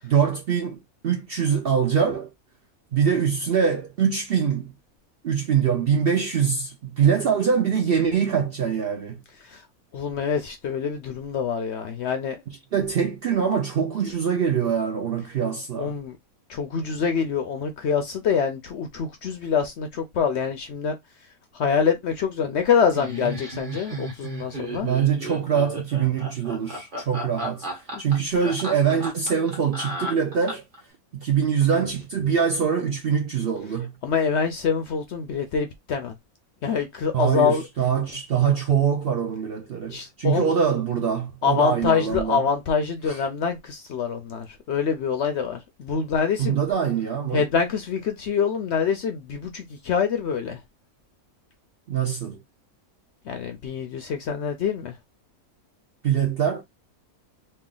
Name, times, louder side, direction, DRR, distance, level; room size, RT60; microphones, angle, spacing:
voice 1, 0.0-2.3 2.9-4.7 5.2-9.2 12.7-16.0 24.8-27.7 28.0-30.6 31.1-33.9 37.1-42.4 43.1-43.2 46.4-47.5 51.9-52.4 56.0-56.6, right 7 dB, 60° right, 0.6 m, -23 dB
voice 2, 9.9-12.4 15.8-16.1 16.5-21.0 21.5-24.9 27.9-28.0 34.0-36.1 36.6-37.6 39.9-40.5 41.4-46.6 47.3-50.6 53.3-54.9, left 6 dB, 65° left, 0.7 m, -25 dB
Laughter, 22.9-30.8, right 1 dB, 35° right, 1.3 m, -33 dB
3.2 x 2.4 x 3.7 m
omnidirectional pair, 1.5 m